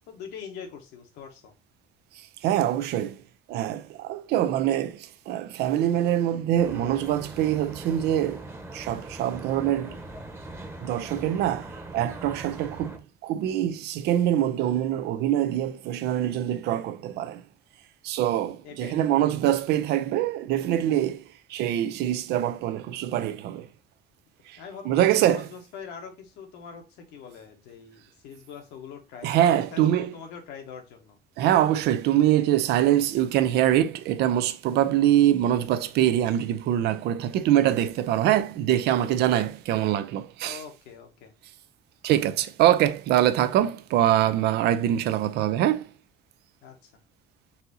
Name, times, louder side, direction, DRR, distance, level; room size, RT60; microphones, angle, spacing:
voice 1, 0.1-1.5 18.6-19.0 24.6-24.9 25.1-31.2 40.4-41.3 46.6-46.9, left 6 dB, 90° left, 1.3 m, -43 dB
voice 2, 2.1-3.2 3.5-8.5 8.7-10.0 10.8-17.4 18.0-21.2 21.5-23.7 24.5-24.6 24.9-25.5 29.2-30.1 31.4-40.6 42.0-45.9, right 12 dB, 80° right, 0.5 m, -24 dB
Traffic noise roadway noise, 6.6-13.0, right 2 dB, 15° right, 1.0 m, -41 dB
4.1 x 2.7 x 4.0 m
cardioid pair, 110°, 17 cm